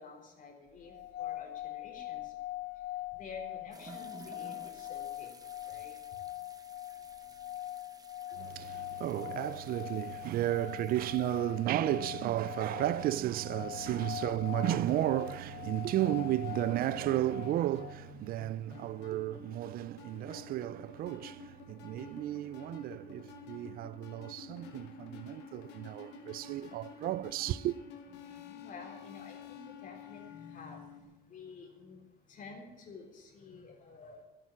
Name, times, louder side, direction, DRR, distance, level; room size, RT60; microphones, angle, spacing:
voice 1, 0.0-2.3 3.1-5.3 5.6-6.0 10.4-10.5 28.1-32.0 32.3-34.2, left 4 dB, 50° left, 3.8 m, -50 dB
sound 1, 0.9-18.0, left 16 dB, 65° left, 0.5 m, -43 dB
sound 2, 3.7-16.1 16.4-16.5 18.5-18.6 20.3-20.4 22.0-22.1 23.0-23.1, right 3 dB, 20° right, 1.1 m, -57 dB
voice 2, 8.3-27.7, right 14 dB, 60° right, 0.4 m, -33 dB
sound 3, 12.9-31.0, left 5 dB, 85° left, 2.2 m, -51 dB
12.0 x 9.1 x 8.4 m
cardioid pair, 110°, 17 cm